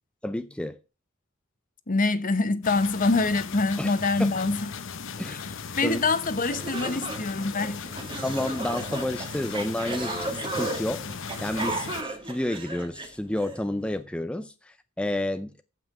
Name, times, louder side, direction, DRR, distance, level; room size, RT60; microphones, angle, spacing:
voice 1, 0.2-0.8 3.8-3.9 4.2-4.3 5.2-5.4 5.8-6.0 8.2-15.6, left 1 dB, 5° left, 0.5 m, -30 dB
voice 2, 1.9-4.7 5.3-7.9, left 3 dB, 40° left, 1.0 m, -25 dB
sound 1, 2.6-12.0, left 5 dB, 65° left, 0.9 m, -37 dB
sound 2, 6.5-13.6, right 2 dB, 25° right, 2.1 m, -35 dB
15.0 x 5.9 x 4.8 m
head